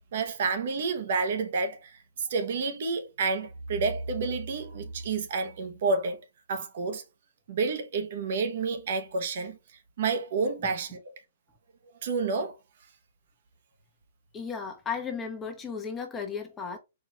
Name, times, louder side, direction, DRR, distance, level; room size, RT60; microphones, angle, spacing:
voice 1, 0.1-7.0 7.5-9.6 10.0-11.0 12.0-12.5, right 4 dB, 60° right, 0.9 m, -29 dB
voice 2, 14.3-16.8, left 6 dB, 15° left, 0.8 m, -35 dB
4.6 x 2.4 x 3.3 m
hypercardioid pair, 150°, 0 cm